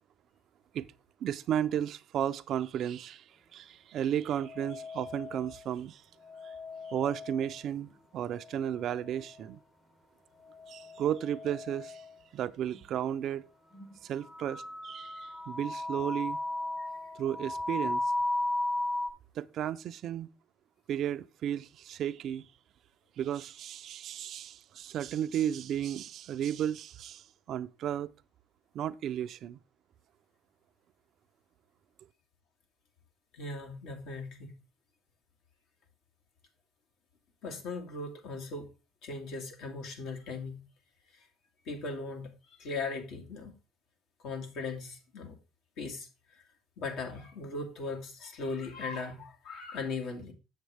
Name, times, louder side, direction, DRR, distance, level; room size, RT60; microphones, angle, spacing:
voice 1, 1.2-3.2 3.5-5.9 6.9-7.9 8.1-9.6 10.7-11.9 12.3-13.4 14.1-15.1 15.5-16.4 17.2-18.0 19.4-20.3 20.9-22.4 23.2-27.2 27.5-28.1 28.8-29.6, right 10 dB, 55° right, 0.5 m, -33 dB
sound 1, 4.4-5.7 6.2-7.8 8.3-9.4 10.4-12.1 12.7-12.8 13.7-13.9 14.2-19.1, left 2 dB, 20° left, 0.9 m, -36 dB
voice 2, 33.3-34.5 37.4-38.7 39.0-40.6 41.1-41.3 41.7-43.5 44.2-45.4 45.8-46.4 46.8-50.3, left 3 dB, 65° left, 2.0 m, -38 dB
7.3 x 7.2 x 3.4 m
supercardioid pair, 90°, 0 cm